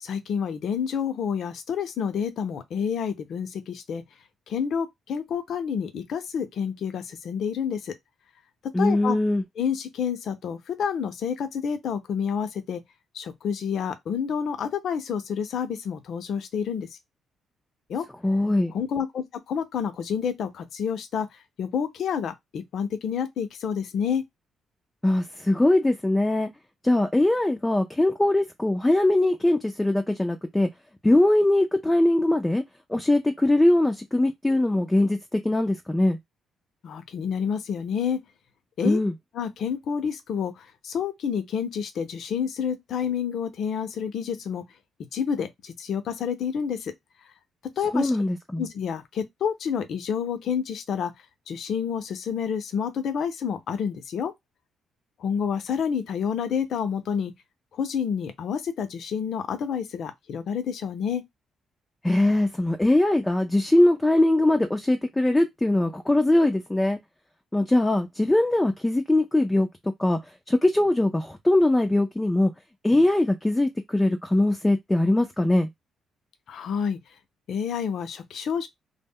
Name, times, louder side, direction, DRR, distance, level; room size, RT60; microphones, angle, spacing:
voice 1, 0.0-4.0 4.5-7.9 8.8-9.2 9.6-12.8 13.1-16.9 17.9-18.0 18.7-21.3 21.6-24.2 36.8-38.2 38.8-39.0 39.3-44.6 45.1-46.9 47.8-48.1 48.6-51.1 51.5-54.3 55.2-57.3 57.8-61.2 76.5-77.0 77.5-78.7, left 7 dB, 65° left, 0.5 m, -29 dB
voice 2, 8.7-9.4 18.2-18.7 25.0-26.5 26.8-30.7 31.0-32.6 32.9-36.2 38.8-39.1 47.9-48.7 62.0-67.0 67.5-69.7 70.0-70.2 70.5-72.5 72.8-75.7, left 1 dB, 10° left, 0.4 m, -21 dB
2.1 x 2.0 x 3.5 m
cardioid pair, 90°, 0 cm